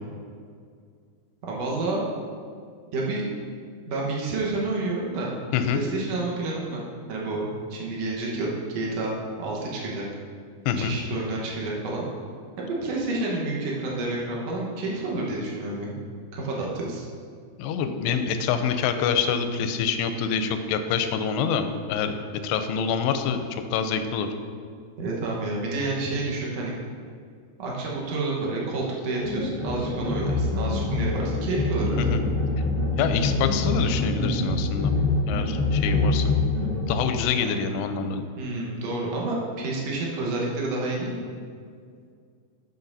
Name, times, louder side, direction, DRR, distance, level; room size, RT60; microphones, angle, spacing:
voice 1, 1.4-2.1 2.9-3.2 3.9-5.3 5.7-6.8 7.1-10.1 10.8-12.1 12.6-15.9 16.3-17.1 25.0-26.7 27.6-32.2 38.4-41.3, right 2 dB, 75° right, -3 dB, 1.5 m, -29 dB
voice 2, 17.6-22.2 22.4-24.3 32.0-32.2 33.0-34.9 35.3-36.3 36.9-38.3, left 6 dB, 90° left, 8 dB, 2.6 m, -26 dB
sound 1, 29.1-36.9, left 3 dB, 30° right, 1.0 m, -25 dB
13.5 x 5.6 x 2.6 m, 2.2 s
omnidirectional pair, 4.6 m